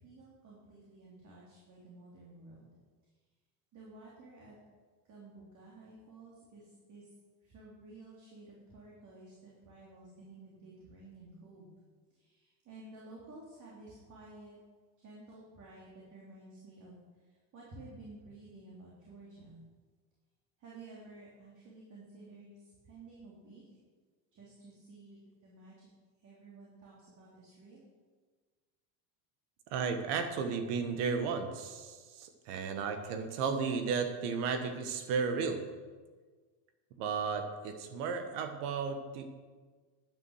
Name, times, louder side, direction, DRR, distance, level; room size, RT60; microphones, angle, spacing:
voice 1, 0.0-2.7 3.7-4.6 5.1-7.0 7.4-11.7 12.1-14.6 15.0-17.0 17.5-19.6 20.6-23.6 24.3-25.9 26.2-27.9, right 2 dB, 35° right, -5 dB, 3.1 m, -53 dB
voice 2, 29.7-35.7 37.0-39.3, right 5 dB, 70° right, 7 dB, 1.5 m, -34 dB
10.5 x 9.3 x 6.4 m, 1.4 s
cardioid pair, 155°, 49 cm